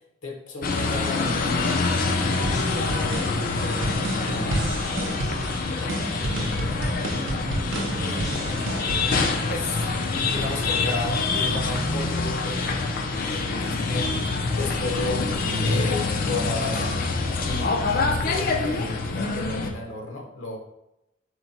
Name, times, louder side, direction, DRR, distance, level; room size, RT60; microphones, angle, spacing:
voice 1, 0.2-1.9 9.5-9.8 10.3-12.8 13.3-14.2 14.6-15.3 15.6-17.0 17.4-20.6, left 2 dB, 80° left, 1 dB, 0.8 m, -33 dB
sound 1, 0.6-19.7, left 3 dB, 45° left, 0.4 m, -26 dB
sound 2, 2.3-9.1, right 1 dB, 75° right, 0.6 m, -30 dB
voice 2, 2.4-9.5, left 1 dB, ahead, -5 dB, 0.8 m, -41 dB
4.2 x 2.1 x 4.1 m, 0.87 s
head